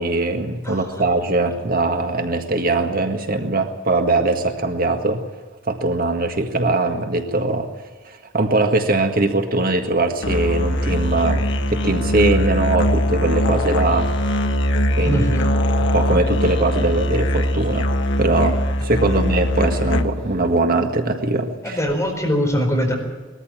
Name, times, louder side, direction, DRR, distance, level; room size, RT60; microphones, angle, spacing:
voice 1, 0.0-5.2 5.6-7.7 8.0-14.1 14.9-15.2 15.9-17.9 18.2-21.8, right 2 dB, 50° right, 5 dB, 1.7 m, -21 dB
voice 2, 0.6-1.1 15.0-15.5 19.0-19.2 21.6-22.9, equal, 15° left, 1 dB, 4.6 m, -22 dB
Musical instrument, 10.2-20.4, equal, 65° left, 1.6 m, -21 dB
21.0 x 14.0 x 8.9 m, 1.3 s
head